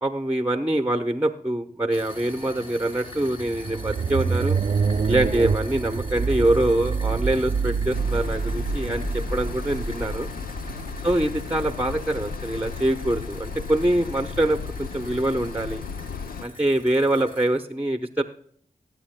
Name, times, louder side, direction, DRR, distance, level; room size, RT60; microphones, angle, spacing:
voice 1, 0.0-4.6 5.1-10.3 11.0-15.8 16.4-18.2, right 1 dB, 10° right, 8 dB, 0.8 m, -24 dB
sound 1, 1.9-17.5, left 1 dB, 40° left, 3.6 m, -44 dB
sound 2, 3.1-11.4, right 5 dB, 50° right, 0.5 m, -27 dB
sound 3, 7.9-16.5, left 5 dB, 85° left, 0.6 m, -35 dB
19.5 x 8.3 x 2.2 m, 0.63 s
cardioid pair, 50°, 15 cm